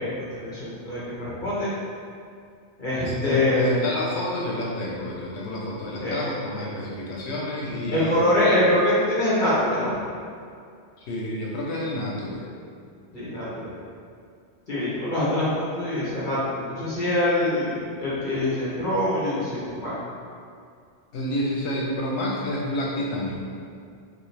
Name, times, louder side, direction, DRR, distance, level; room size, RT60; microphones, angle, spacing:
voice 1, 0.0-1.7 2.8-3.8 6.0-6.1 7.9-9.9 13.1-13.7 14.7-17.7 18.0-19.9, left 1 dB, 50° left, -9 dB, 1.0 m, -24 dB
voice 2, 3.0-8.3 11.0-12.4 21.1-23.5, left 1 dB, 80° left, -3 dB, 0.9 m, -29 dB
5.2 x 2.1 x 3.2 m, 2.3 s
omnidirectional pair, 1.1 m